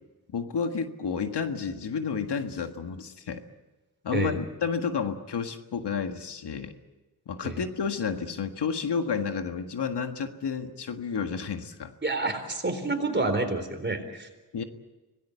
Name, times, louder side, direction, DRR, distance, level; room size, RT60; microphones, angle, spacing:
voice 1, 0.3-3.4 4.0-6.7 7.3-11.9 14.5-14.6, left 6 dB, 90° left, 7 dB, 1.7 m, -31 dB
voice 2, 12.0-14.3, right 2 dB, 25° right, 6 dB, 4.1 m, -28 dB
26.0 x 18.5 x 8.3 m, 1.2 s
wide cardioid pair, 95°, 40 cm